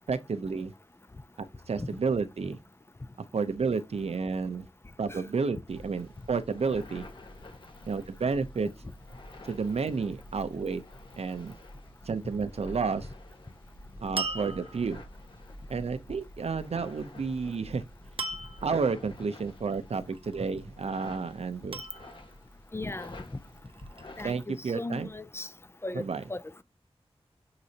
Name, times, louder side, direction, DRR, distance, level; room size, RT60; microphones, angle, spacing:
voice 1, 0.1-0.7 1.7-2.6 3.3-4.7 5.0-7.1 7.9-8.7 9.4-10.8 11.2-11.6 12.1-13.1 14.0-15.0 15.7-17.8 18.6-21.8 24.2-25.1 25.9-26.2, right 5 dB, 80° right, 0.8 m, -31 dB
sound 1, 5.7-24.3, left 1 dB, 50° left, 1.6 m, -49 dB
sound 2, 14.2-15.1 18.2-18.8 20.1-20.7 21.7-22.5 23.5-24.3, right 3 dB, 60° right, 1.0 m, -38 dB
voice 2, 22.7-23.1 24.2-25.5 25.8-26.0 26.3-26.4, left 2 dB, 25° left, 0.6 m, -36 dB
9.6 x 4.0 x 2.9 m
wide cardioid pair, 85°, 11 cm